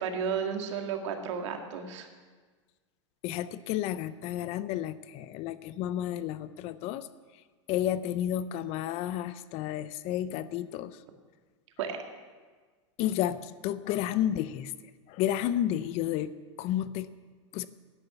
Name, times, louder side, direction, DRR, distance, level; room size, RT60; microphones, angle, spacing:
voice 1, 0.0-2.1 11.8-12.0, right 7 dB, 70° right, 4 dB, 1.9 m, -33 dB
voice 2, 3.2-7.1 7.7-11.0 13.0-14.7 15.1-17.1 17.5-17.7, left 11 dB, 40° left, 15 dB, 0.5 m, -31 dB
12.0 x 9.9 x 6.9 m, 1.4 s
supercardioid pair, 135°, 16 cm